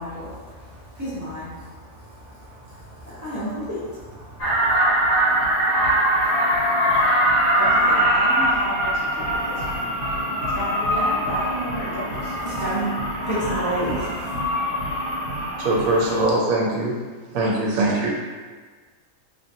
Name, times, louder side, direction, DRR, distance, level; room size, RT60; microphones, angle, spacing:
voice 1, 0.0-4.9 12.1-12.9 13.2-14.3, right 1 dB, 20° right, -11 dB, 0.5 m, -32 dB
sound 1, 4.4-16.2, right 1 dB, 80° left, 1.3 m, -22 dB
voice 2, 6.2-6.7 15.6-16.9 17.3-18.1, right 2 dB, 75° right, -2 dB, 1.0 m, -22 dB
voice 3, 7.5-9.9 10.5-12.3, equal, 55° left, -8 dB, 0.9 m, -32 dB
2.8 x 2.4 x 2.7 m, 1.4 s
omnidirectional pair, 1.5 m